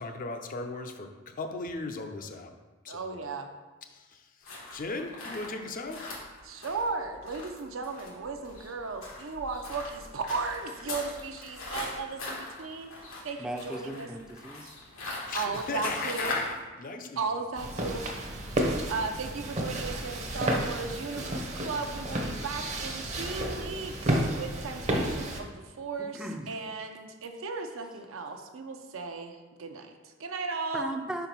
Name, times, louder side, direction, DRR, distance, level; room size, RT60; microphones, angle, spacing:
voice 1, 0.0-2.5 2.8-3.2 3.9-6.0 15.3-17.2, left 3 dB, 40° left, 5 dB, 0.6 m, -37 dB
voice 2, 2.9-3.5 6.4-12.9 13.2-14.1 15.3-16.3 17.2-18.6 18.9-26.2 26.5-30.9, right 4 dB, 70° right, 5 dB, 0.7 m, -36 dB
sound 1, 4.4-16.6, left 2 dB, 90° left, 1.6 m, -40 dB
voice 3, 13.4-14.8 26.0-26.6 30.7-31.3, right 1 dB, 5° right, 3 dB, 0.5 m, -37 dB
sound 2, 17.6-25.4, right 1 dB, 35° right, 0.7 m, -31 dB
5.0 x 4.6 x 5.3 m, 1.3 s
head